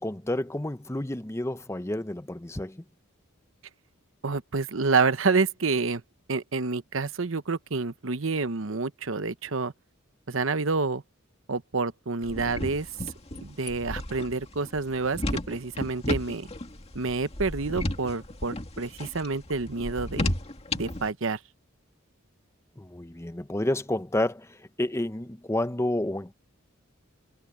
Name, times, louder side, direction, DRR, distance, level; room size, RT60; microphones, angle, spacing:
voice 1, 0.0-2.8 22.8-26.3, left 1 dB, 15° left, 0.7 m, -30 dB
voice 2, 4.2-6.0 6.3-9.7 10.3-11.0 11.5-12.9 13.4-15.2 15.5-16.5 16.9-20.3 20.7-21.4, right 4 dB, 65° right, 0.9 m, -28 dB
sound 1, 12.2-21.1, left 1 dB, 30° left, 2.2 m, -33 dB
head